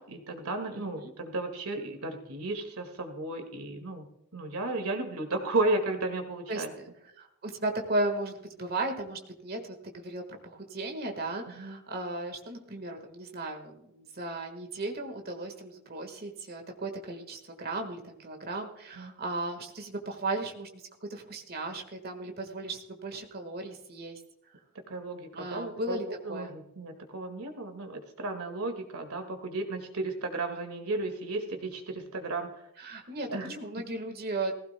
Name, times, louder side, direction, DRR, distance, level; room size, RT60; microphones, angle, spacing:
voice 1, 0.0-4.1 4.3-6.7 11.5-11.8 19.0-19.1 24.8-32.5 33.3-33.8, right 2 dB, 85° right, 6 dB, 2.0 m, -34 dB
voice 2, 0.7-1.1 6.5-6.9 7.2-20.7 21.1-24.2 25.3-26.5 32.8-34.5, right 2 dB, 45° right, 4 dB, 1.6 m, -36 dB
19.0 x 15.5 x 2.3 m, 0.80 s
head